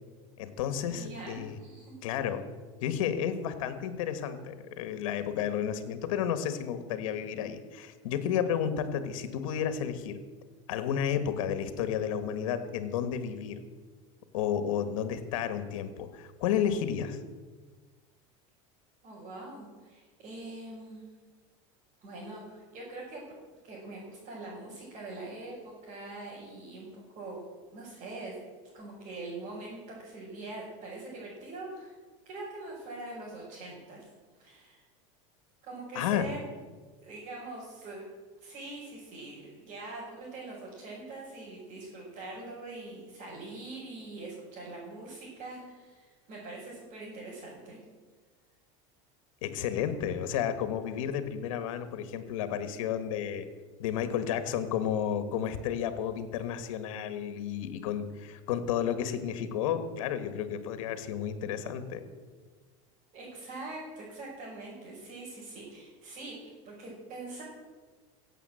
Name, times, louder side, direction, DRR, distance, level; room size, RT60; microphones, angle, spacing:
voice 1, 0.4-1.6 2.0-2.5 2.8-10.2 10.7-13.6 14.3-17.2 35.9-36.3 49.4-53.5 53.8-62.0, left 9 dB, 85° left, 10 dB, 1.5 m, -32 dB
voice 2, 0.9-1.9 19.0-21.0 22.0-23.2 23.6-27.4 27.7-28.3 28.7-31.9 32.3-34.0 34.4-34.8 35.6-36.4 37.0-38.1 38.4-47.8 63.1-67.4, right 2 dB, 45° right, -6 dB, 5.8 m, -43 dB
16.0 x 7.9 x 7.7 m, 1.4 s
supercardioid pair, 140°, 17 cm